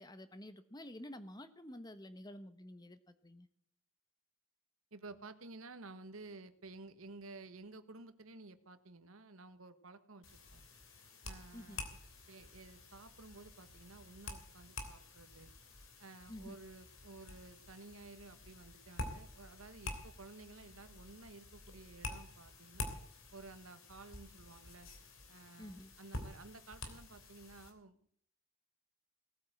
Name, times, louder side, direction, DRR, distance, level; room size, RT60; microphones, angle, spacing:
voice 1, 0.0-3.5 11.5-11.8 16.3-16.6 25.6-25.9, left 1 dB, 20° left, 11 dB, 1.1 m, -50 dB
voice 2, 4.9-10.6 11.2-11.8 12.3-15.5 16.0-22.9 23.3-24.9 25.3-28.0, right 3 dB, 75° right, 12 dB, 1.4 m, -54 dB
sound 1, 10.2-27.7, left 2 dB, 65° left, 3.1 m, -49 dB
18.5 x 8.9 x 7.8 m, 0.63 s
head